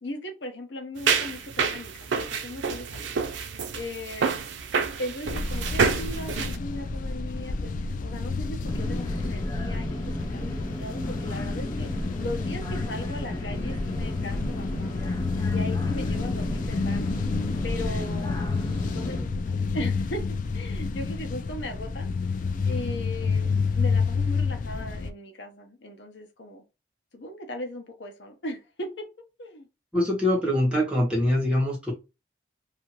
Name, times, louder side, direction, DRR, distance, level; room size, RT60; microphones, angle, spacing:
voice 1, 0.0-3.1 3.7-4.4 5.0-10.0 10.3-11.9 12.2-15.1 15.5-17.1 17.6-18.4 18.9-22.1 22.6-23.5 23.7-26.6 27.1-29.1 29.4-29.7, left 1 dB, 70° left, 0.7 m, -38 dB
sound 1, 1.0-6.6, right 5 dB, 85° right, 0.5 m, -28 dB
sound 2, 5.3-25.1, left 4 dB, 45° left, 0.3 m, -29 dB
sound 3, 8.6-19.2, left 1 dB, 25° left, 0.9 m, -34 dB
voice 2, 29.9-31.9, left 1 dB, 5° right, 1.2 m, -23 dB
2.7 x 2.4 x 2.9 m
head